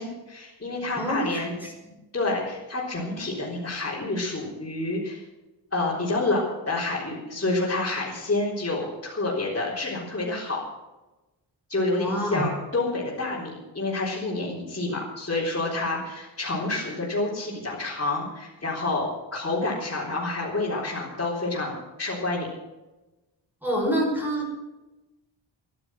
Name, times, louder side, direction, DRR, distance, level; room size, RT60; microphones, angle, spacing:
voice 1, 0.0-1.5 2.1-5.2 5.7-10.6 11.7-22.5, left 2 dB, 30° left, -8 dB, 4.0 m, -28 dB
voice 2, 1.0-1.7 12.0-12.4 23.6-24.6, right 1 dB, 5° right, -1 dB, 5.2 m, -27 dB
14.0 x 11.5 x 7.7 m, 1.1 s
wide cardioid pair, 145°, 45 cm